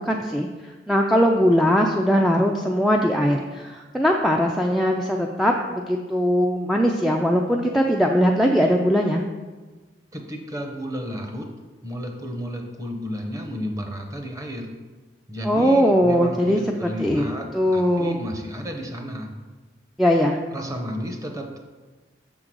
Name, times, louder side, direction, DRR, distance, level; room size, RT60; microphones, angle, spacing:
voice 1, 0.0-9.2 15.4-17.2 17.5-18.2 20.0-20.4, equal, ahead, 1 dB, 0.3 m, -20 dB
voice 2, 10.1-11.5 11.8-14.7 15.3-19.3 20.5-21.6, equal, 20° right, 3 dB, 0.8 m, -32 dB
6.5 x 3.8 x 6.1 m, 1.3 s
head